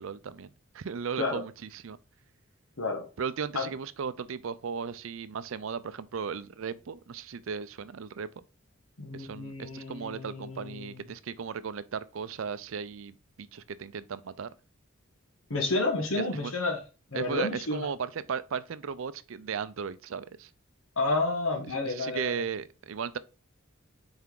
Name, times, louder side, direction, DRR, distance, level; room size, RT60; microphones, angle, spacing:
voice 1, 0.0-2.0 3.2-8.3 9.1-14.5 16.4-16.5 17.1-20.5 21.8-23.2, right 6 dB, 70° right, 0.5 m, -36 dB
voice 2, 9.0-11.0 15.5-16.8 17.1-17.9 21.0-22.3, left 3 dB, 80° left, 1.4 m, -30 dB
5.9 x 4.4 x 3.7 m
head